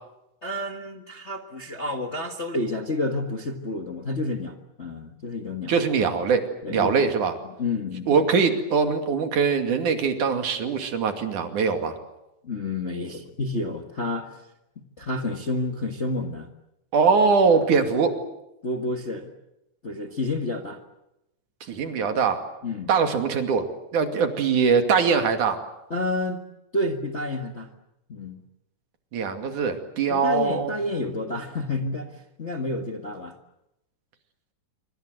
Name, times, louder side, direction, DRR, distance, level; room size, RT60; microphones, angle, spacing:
voice 1, 0.4-5.7 6.6-6.9 7.4-8.2 12.4-14.4 14.7-16.5 18.6-19.3 19.8-20.8 22.6-22.9 25.9-26.4 26.7-27.7 28.1-28.4 30.1-33.4, left 2 dB, 30° left, 5 dB, 1.3 m, -30 dB
voice 2, 5.7-7.3 8.1-12.0 16.9-18.1 21.7-22.4 22.9-23.7 23.9-25.6 29.1-30.7, right 5 dB, 70° right, 7 dB, 3.9 m, -22 dB
26.5 x 25.5 x 7.9 m, 0.88 s
omnidirectional pair, 3.6 m